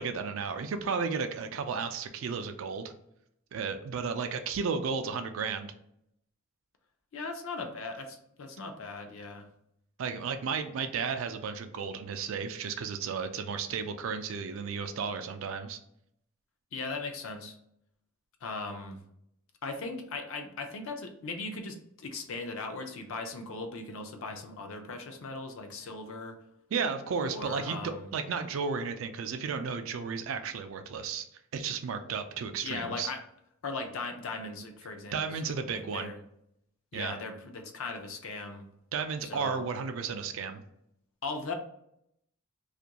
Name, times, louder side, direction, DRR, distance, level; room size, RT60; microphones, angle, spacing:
voice 1, 0.0-2.9 3.5-5.7 10.0-15.8 26.7-27.8 28.1-31.3 31.5-33.1 35.1-36.1 36.9-37.1 38.9-40.6, right 5 dB, 65° right, 8 dB, 0.3 m, -33 dB
voice 2, 7.1-9.5 16.7-17.6 18.4-19.0 19.6-26.4 27.2-28.1 32.6-33.2 33.6-36.2 36.9-38.7 39.2-39.6 41.2-41.5, left 3 dB, 65° left, 5 dB, 0.4 m, -38 dB
2.4 x 2.2 x 2.8 m, 0.75 s
head